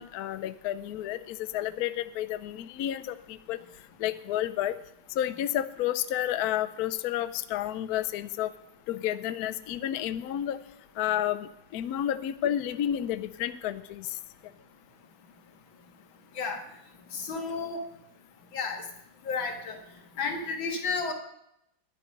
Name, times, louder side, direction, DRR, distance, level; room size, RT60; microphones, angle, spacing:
voice 1, 0.0-3.6 4.0-4.8 5.2-8.5 8.9-10.6 11.0-14.2, left 11 dB, 70° left, 12 dB, 0.9 m, -31 dB
voice 2, 17.1-17.8 18.5-18.8 19.3-19.8 20.2-21.1, left 4 dB, 85° left, 3 dB, 2.4 m, -32 dB
11.0 x 10.5 x 5.4 m, 0.79 s
omnidirectional pair, 2.1 m